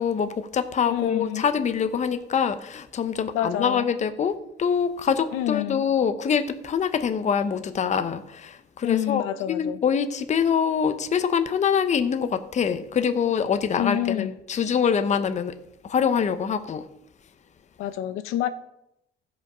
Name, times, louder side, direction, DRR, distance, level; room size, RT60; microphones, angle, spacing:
voice 1, 0.0-15.5 15.9-16.8, left 7 dB, 35° left, 0.8 m, -25 dB
voice 2, 0.9-1.4 3.3-3.9 5.3-5.8 8.8-9.8 13.8-14.3 17.8-18.5, left 11 dB, 85° left, 0.7 m, -27 dB
15.5 x 5.5 x 5.0 m
cardioid pair, 120°, 21 cm